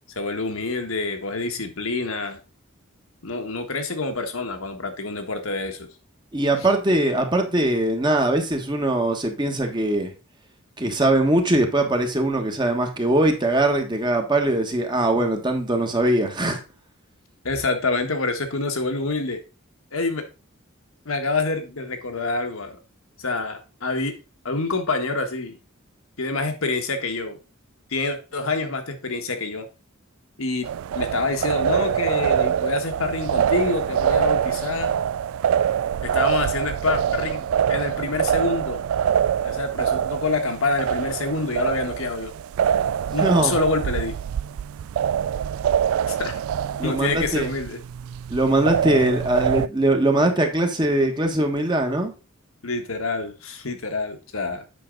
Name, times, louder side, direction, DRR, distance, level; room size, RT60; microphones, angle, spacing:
voice 1, 0.1-2.4 3.2-5.9 17.4-19.4 19.9-20.2 21.0-22.8 23.2-24.1 24.4-25.6 26.2-27.4 27.9-29.7 30.4-30.7 30.9-35.0 36.0-38.8 39.4-42.3 43.1-44.1 46.1-46.4 46.8-47.8 52.6-54.6, left 3 dB, 75° left, 1.5 m, -27 dB
voice 2, 6.3-10.1 10.8-16.6 43.2-43.5 46.8-47.5 48.3-52.1, right 1 dB, 20° right, 1.3 m, -21 dB
sound 1, 30.6-49.7, right 9 dB, 75° right, 0.3 m, -24 dB
8.5 x 5.8 x 3.8 m
head